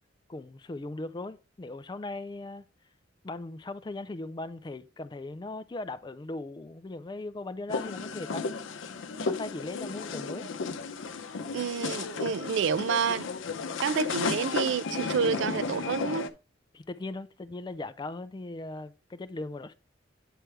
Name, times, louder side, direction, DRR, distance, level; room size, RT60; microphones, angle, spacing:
voice 1, 0.3-2.7 3.2-8.8 9.3-10.5 16.7-19.7, left 2 dB, 25° left, 0.4 m, -39 dB
sound 1, 7.7-16.3, left 4 dB, 90° left, 0.6 m, -34 dB
voice 2, 11.5-13.3 13.8-16.3, right 6 dB, 70° right, 0.3 m, -29 dB
8.9 x 3.3 x 4.7 m
head